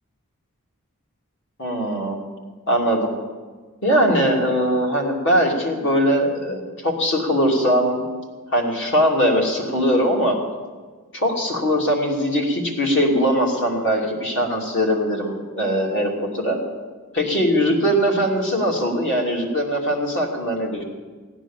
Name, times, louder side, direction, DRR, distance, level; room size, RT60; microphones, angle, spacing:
voice 1, 1.6-2.2 2.7-3.1 3.8-8.0 8.5-10.4 11.1-16.6 17.1-20.8, equal, 55° left, -1 dB, 2.9 m, -21 dB
16.0 x 10.0 x 7.4 m, 1.4 s
head